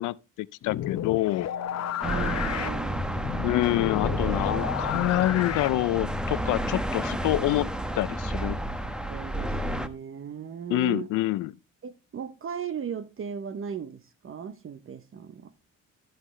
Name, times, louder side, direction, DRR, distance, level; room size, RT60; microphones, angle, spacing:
voice 1, 0.0-1.5 3.4-7.7 7.9-8.6 10.7-11.5, left 17 dB, 85° left, 0.5 m, -26 dB
sound 1, 0.6-6.2, left 11 dB, 60° left, 0.8 m, -32 dB
Mallet percussion, 1.4-8.9, right 9 dB, 85° right, 2.5 m, -53 dB
sound 2, 2.0-9.9, right 1 dB, 5° right, 1.0 m, -31 dB
voice 2, 2.0-3.3 9.0-11.1 11.8-15.5, right 7 dB, 45° right, 0.8 m, -37 dB
14.5 x 5.8 x 3.1 m
cardioid pair, 90°, 30 cm